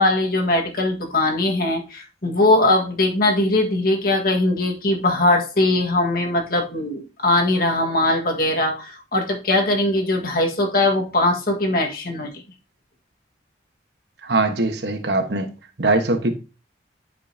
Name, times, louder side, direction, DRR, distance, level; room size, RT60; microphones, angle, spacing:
voice 1, 0.0-12.3, left 2 dB, 50° left, 1.6 m, -20 dB
voice 2, 14.2-15.5 15.8-16.3, right 2 dB, 60° right, 1.3 m, -21 dB
11.5 x 5.3 x 2.8 m
head